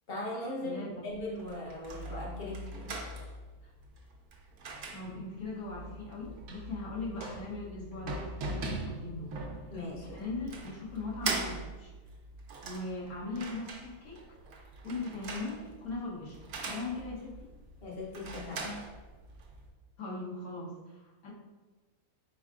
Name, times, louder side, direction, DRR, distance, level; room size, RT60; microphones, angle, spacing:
voice 1, 0.1-3.0 9.7-10.2 17.8-18.9, left 1 dB, 45° left, -3 dB, 1.0 m, -39 dB
voice 2, 0.6-1.0 4.9-9.3 10.0-11.9 12.6-14.2 14.8-17.3 20.0-21.3, left 3 dB, 80° left, -5 dB, 1.6 m, -39 dB
sound 1, 1.1-19.7, right 3 dB, 80° right, 1.1 m, -41 dB
4.4 x 3.8 x 2.4 m, 1.2 s
omnidirectional pair, 1.5 m